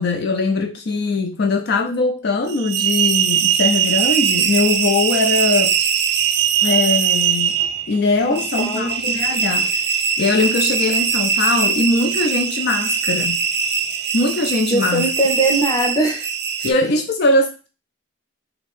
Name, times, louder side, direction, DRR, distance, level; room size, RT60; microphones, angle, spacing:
voice 1, 0.0-5.8 6.6-7.6 7.9-13.4 14.1-15.1 16.6-17.7, left 3 dB, 50° left, 0.4 m, -21 dB
sound 1, 2.5-16.7, right 7 dB, 50° right, 0.4 m, -21 dB
voice 2, 8.3-8.9 14.7-16.3 16.6-16.7, right 2 dB, 15° left, 0.7 m, -21 dB
3.8 x 2.6 x 4.2 m
head